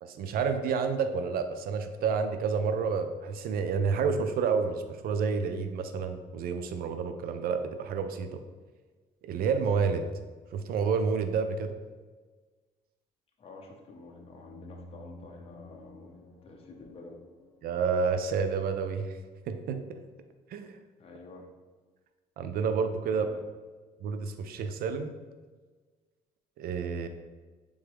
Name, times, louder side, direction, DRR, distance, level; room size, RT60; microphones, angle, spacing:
voice 1, 0.0-8.4 9.2-10.1 10.5-11.8 17.6-19.2 19.5-20.0 20.5-20.8 22.4-23.3 24.0-25.1 26.6-27.1, right 5 dB, 65° right, 8 dB, 0.4 m, -29 dB
voice 2, 13.4-17.2 21.0-21.5 23.0-23.4, left 3 dB, 35° left, 0 dB, 0.7 m, -49 dB
sound 1, 14.0-18.6, left 1 dB, 5° left, 1.2 m, -52 dB
3.9 x 3.5 x 3.4 m, 1.4 s
cardioid pair, 110°, 17 cm